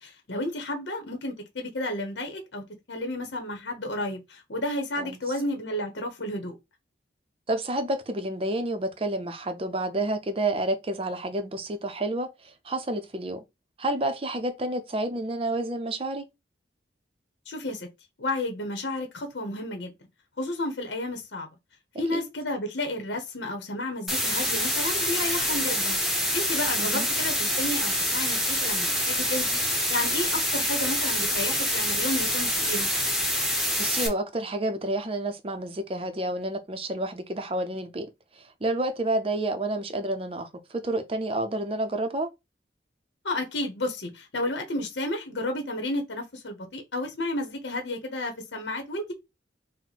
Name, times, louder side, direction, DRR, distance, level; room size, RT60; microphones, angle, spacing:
voice 1, 0.0-6.5 17.5-17.9 18.2-19.9 20.4-21.5 22.0-26.0 26.3-29.6 29.9-32.9 43.2-49.1, left 1 dB, 80° left, 0.9 m, -32 dB
voice 2, 7.5-13.4 13.8-16.2 22.1-22.2 26.8-27.1 33.8-38.1 38.4-42.3, right 1 dB, 30° right, 0.5 m, -29 dB
sound 1, 24.1-34.1, equal, ahead, 0.8 m, -26 dB
4.5 x 2.1 x 4.1 m
head